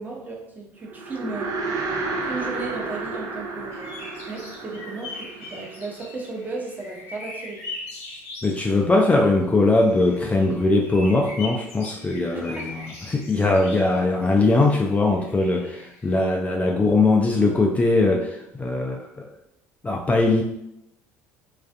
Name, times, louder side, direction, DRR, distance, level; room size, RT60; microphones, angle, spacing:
voice 1, 0.0-1.6 2.2-4.0 4.3-7.6 12.3-12.7, right 3 dB, 25° right, -1 dB, 0.7 m, -35 dB
sound 1, 0.9-6.3, right 3 dB, 55° right, 0.4 m, -31 dB
sound 2, 3.7-8.6 9.6-16.2, left 2 dB, 85° left, 0.8 m, -40 dB
voice 2, 8.4-19.3 19.8-20.4, left 2 dB, 20° left, 0 dB, 0.3 m, -21 dB
2.4 x 2.3 x 2.4 m, 0.83 s
hypercardioid pair, 70°, 7 cm